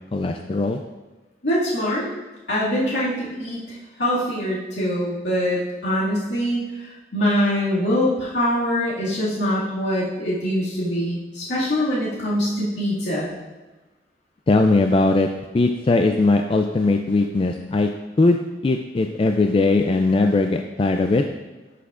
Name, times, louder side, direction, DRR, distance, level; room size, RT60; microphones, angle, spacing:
voice 1, 0.1-0.8 14.5-15.3 15.5-17.9 18.2-21.2, left 2 dB, 30° left, 5 dB, 0.3 m, -19 dB
voice 2, 1.4-2.1 2.5-3.6 4.0-13.3, equal, 85° left, -8 dB, 2.1 m, -23 dB
12.0 x 5.7 x 2.5 m, 1.2 s
head